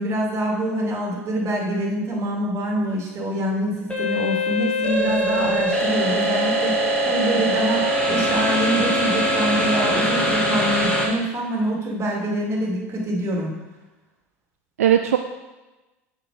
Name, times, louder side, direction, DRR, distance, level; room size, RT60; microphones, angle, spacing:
voice 1, 0.0-13.5, right 1 dB, 40° right, -1 dB, 2.3 m, -25 dB
sound 1, 3.9-11.1, equal, 15° left, 1.9 m, -22 dB
voice 2, 5.0-5.6 14.8-15.2, right 10 dB, 80° right, 6 dB, 0.4 m, -21 dB
7.0 x 5.0 x 4.9 m, 1.1 s
hypercardioid pair, 80°, 8 cm